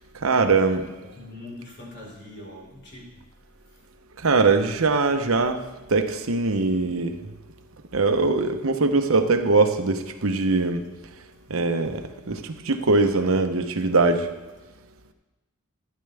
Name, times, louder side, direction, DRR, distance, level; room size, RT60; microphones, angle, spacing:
voice 1, 0.2-0.9 4.2-5.6 5.9-7.2 7.9-10.9 11.5-14.3, right 3 dB, 70° right, 7 dB, 0.9 m, -22 dB
voice 2, 1.1-3.2, left 1 dB, 55° left, -4 dB, 4.4 m, -42 dB
13.0 x 10.5 x 3.4 m, 1.2 s
head